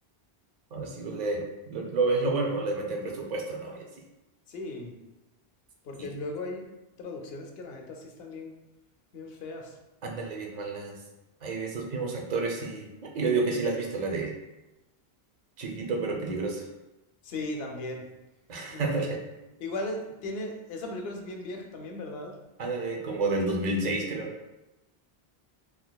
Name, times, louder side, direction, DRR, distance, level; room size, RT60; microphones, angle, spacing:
voice 1, 0.7-3.9 10.0-11.0 11.4-14.3 15.6-16.7 18.5-19.2 22.6-24.3, right 3 dB, 50° right, 0 dB, 0.6 m, -30 dB
voice 2, 4.5-5.0 5.8-6.7 7.0-8.5 9.1-9.8 17.2-18.1 18.7-19.3 19.6-22.4, left 2 dB, 70° left, 3 dB, 0.8 m, -37 dB
3.9 x 2.8 x 2.2 m, 1.0 s
omnidirectional pair, 1.1 m